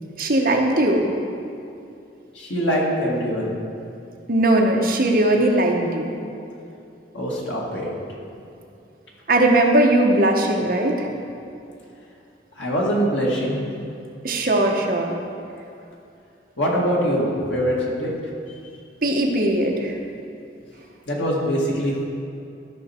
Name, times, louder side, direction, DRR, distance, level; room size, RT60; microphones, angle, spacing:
voice 1, 0.2-1.1 4.3-6.1 9.3-11.1 14.2-15.2 19.0-19.9, right 1 dB, 50° right, 1 dB, 1.0 m, -19 dB
voice 2, 2.3-3.6 7.1-7.9 12.6-13.6 16.6-18.1 21.1-22.0, equal, 85° left, -3 dB, 1.9 m, -23 dB
13.0 x 5.9 x 4.3 m, 2.6 s
head